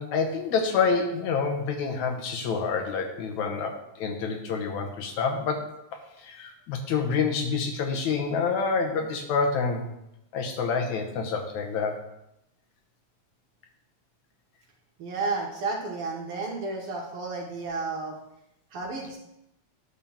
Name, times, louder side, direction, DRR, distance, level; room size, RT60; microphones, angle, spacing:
voice 1, 0.0-9.9 10.3-12.0, left 5 dB, 80° left, 3 dB, 2.4 m, -28 dB
voice 2, 15.0-18.2 18.7-19.2, right 3 dB, 60° right, 0 dB, 1.7 m, -32 dB
9.7 x 3.7 x 7.1 m, 0.84 s
omnidirectional pair, 3.4 m